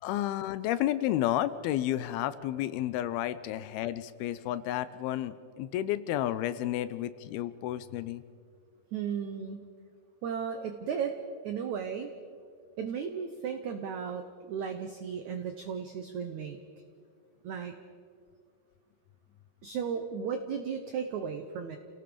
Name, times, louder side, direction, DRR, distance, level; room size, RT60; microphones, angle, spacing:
voice 1, 0.0-8.2, left 13 dB, 80° left, 14 dB, 2.4 m, -31 dB
voice 2, 8.9-9.7 10.2-11.2 11.4-12.1 12.8-16.6 17.4-17.7 19.6-21.8, right 7 dB, 85° right, 7 dB, 1.6 m, -35 dB
29.0 x 17.5 x 5.1 m, 2.3 s
omnidirectional pair, 4.7 m